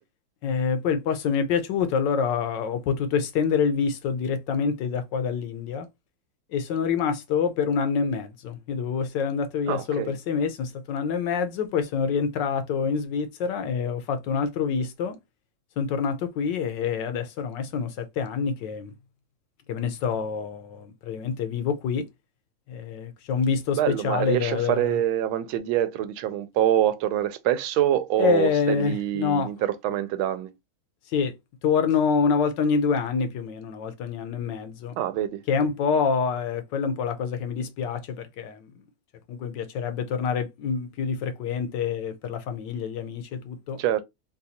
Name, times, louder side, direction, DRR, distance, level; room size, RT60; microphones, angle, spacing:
voice 1, 0.4-5.9 6.5-15.2 15.8-18.9 19.7-22.0 22.7-25.0 28.2-29.5 31.1-31.3 31.6-34.9 35.5-38.7 39.3-43.8, left 6 dB, 70° left, 1.2 m, -26 dB
voice 2, 9.7-10.1 23.8-30.5 35.0-35.4 43.8-44.0, right 11 dB, 80° right, 1.4 m, -25 dB
4.0 x 2.3 x 2.7 m
omnidirectional pair, 2.2 m